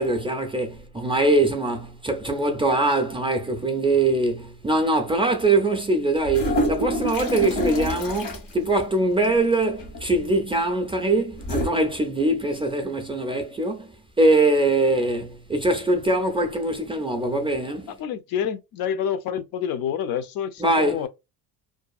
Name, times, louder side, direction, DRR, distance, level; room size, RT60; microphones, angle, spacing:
voice 1, 0.0-13.9 14.2-17.9 20.6-21.1, right 2 dB, 15° right, 0.3 m, -22 dB
sound 1, 6.2-8.5 9.8-10.2 11.4-11.7, equal, 85° left, 1.4 m, -26 dB
voice 2, 18.0-21.1, left 8 dB, 65° left, 0.5 m, -28 dB
2.6 x 2.3 x 2.3 m
cardioid pair, 120°, 40 cm